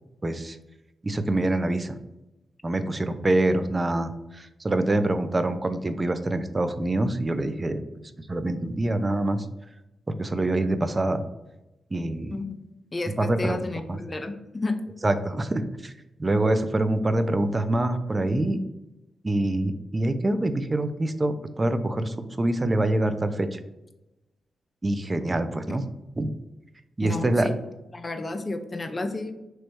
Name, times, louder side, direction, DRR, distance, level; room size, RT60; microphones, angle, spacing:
voice 1, 0.2-0.6 1.0-2.0 2.6-7.8 8.3-9.5 10.1-11.2 11.9-12.3 13.2-13.6 13.9-14.0 15.0-15.9 16.2-18.6 19.2-23.6 24.8-25.8 26.2-26.3 27.0-27.5, right 1 dB, 30° right, 10 dB, 0.4 m, -25 dB
voice 2, 12.9-14.8 25.7-25.8 27.0-27.5 27.9-29.4, left 2 dB, 30° left, 7 dB, 0.5 m, -31 dB
3.1 x 3.1 x 4.5 m, 0.96 s
cardioid pair, 60°, 0 cm